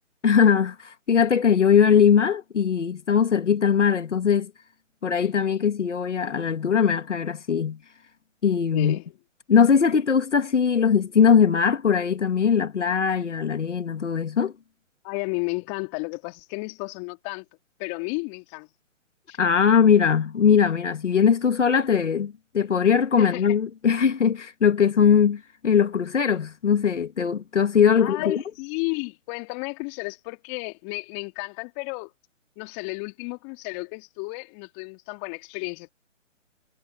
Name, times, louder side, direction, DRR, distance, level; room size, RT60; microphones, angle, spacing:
voice 1, 0.2-4.5 5.0-7.8 8.4-9.0 9.5-14.5 19.4-28.4, left 7 dB, 65° left, 2.6 m, -20 dB
voice 2, 8.7-9.0 15.0-17.4 17.8-18.7 19.3-19.4 23.2-23.6 28.0-32.1 32.6-35.9, left 34 dB, 25° left, 2.7 m, -32 dB
figure-of-eight pair, 140°, 38 cm